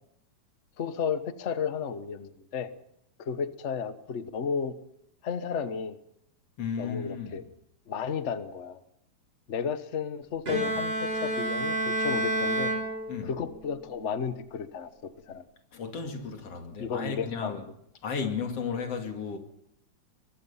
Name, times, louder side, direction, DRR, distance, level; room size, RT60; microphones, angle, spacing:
voice 1, 0.8-2.7 3.2-4.7 5.2-6.0 6.8-7.4 7.9-8.8 9.5-12.7 13.2-14.9 15.3-15.4 16.8-17.6, left 6 dB, 75° left, 0.6 m, -33 dB
voice 2, 6.6-7.4 13.1-13.3 15.7-17.6 18.0-19.4, left 6 dB, 55° left, 3.3 m, -34 dB
Bowed string instrument, 10.5-13.6, right 1 dB, 30° right, 4.3 m, -29 dB
22.5 x 22.5 x 5.7 m
omnidirectional pair, 3.3 m